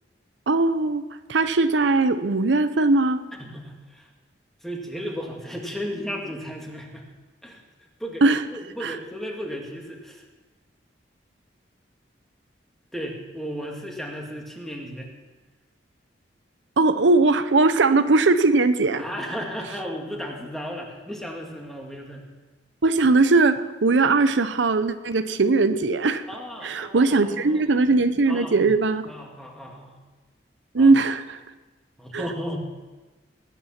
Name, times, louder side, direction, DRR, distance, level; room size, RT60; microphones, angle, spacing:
voice 1, 0.5-1.0 1.3-3.2 8.2-8.4 8.8-9.0 16.8-19.0 22.8-26.2 26.6-29.1 30.7-31.4 32.1-32.2, right 3 dB, 80° right, 11 dB, 0.7 m, -20 dB
voice 2, 3.3-4.1 4.6-7.1 7.4-7.6 8.0-8.2 8.5-10.2 12.9-15.1 19.0-22.3 26.3-28.0 28.3-28.7 29.1-30.0 30.8-30.9 32.0-32.6, equal, ahead, 0 dB, 2.1 m, -35 dB
20.0 x 9.4 x 5.9 m, 1.2 s
head